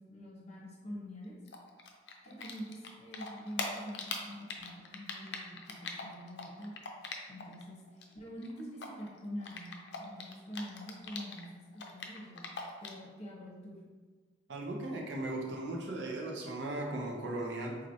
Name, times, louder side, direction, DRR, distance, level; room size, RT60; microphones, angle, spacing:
voice 1, 0.0-1.4 2.2-6.7 7.3-7.8 8.1-12.5 12.8-13.8, equal, 40° left, -3 dB, 0.9 m, -45 dB
Typing, 1.5-7.6 7.9-11.4 11.7-13.1, left 4 dB, 70° left, 0.4 m, -41 dB
voice 2, 14.5-17.8, right 2 dB, 80° right, 0 dB, 0.7 m, -37 dB
3.9 x 3.1 x 2.7 m, 1.4 s
head